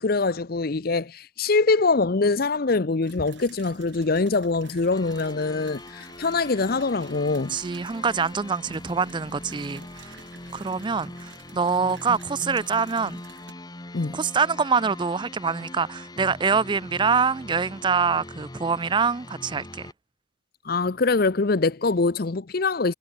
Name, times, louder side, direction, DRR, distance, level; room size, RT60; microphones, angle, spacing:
voice 1, 0.0-7.6 13.9-14.2 20.6-22.9, left 3 dB, 50° left, 0.7 m, -23 dB
sound 1, 3.0-13.5, right 5 dB, 65° right, 7.2 m, -51 dB
sound 2, 4.9-19.9, left 1 dB, 20° left, 1.3 m, -42 dB
voice 2, 7.5-10.2 10.5-13.2 14.1-19.9, right 5 dB, 25° right, 0.4 m, -25 dB
head